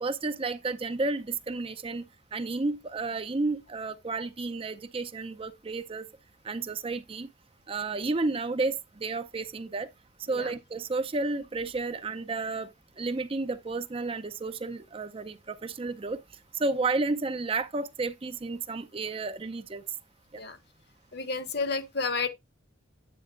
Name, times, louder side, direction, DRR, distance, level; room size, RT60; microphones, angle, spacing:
voice 1, 0.0-2.1 2.3-6.1 6.4-7.3 7.7-9.9 10.3-12.7 13.0-16.2 16.5-19.8, right 3 dB, 30° right, 0.5 m, -31 dB
voice 2, 21.1-22.3, left 4 dB, 55° left, 1.2 m, -31 dB
9.4 x 7.8 x 2.4 m
head